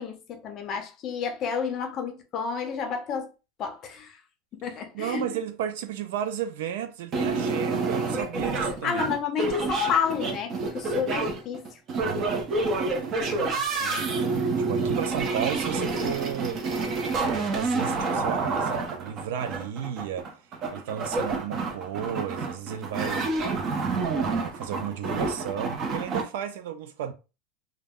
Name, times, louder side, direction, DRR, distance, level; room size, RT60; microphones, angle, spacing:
voice 1, 0.0-3.3 3.6-4.2 4.5-5.2 8.8-11.7, left 6 dB, 35° left, 0.5 m, -30 dB
voice 2, 4.9-9.1 12.0-14.2 14.7-20.3 20.7-23.4 24.2-27.1, right 9 dB, 85° right, 0.4 m, -34 dB
sound 1, 7.1-26.2, right 3 dB, 30° right, 0.5 m, -28 dB
2.2 x 2.0 x 3.4 m
supercardioid pair, 165°, 0 cm